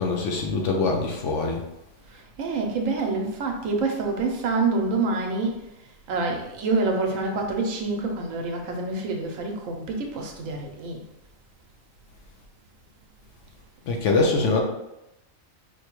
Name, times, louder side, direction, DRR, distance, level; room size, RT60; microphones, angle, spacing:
voice 1, 0.0-1.6 13.9-14.6, left 3 dB, 70° left, 1 dB, 0.9 m, -23 dB
voice 2, 2.4-5.5 6.1-11.0, right 3 dB, 80° right, 2 dB, 1.0 m, -26 dB
4.7 x 2.2 x 3.0 m, 0.89 s
omnidirectional pair, 1.4 m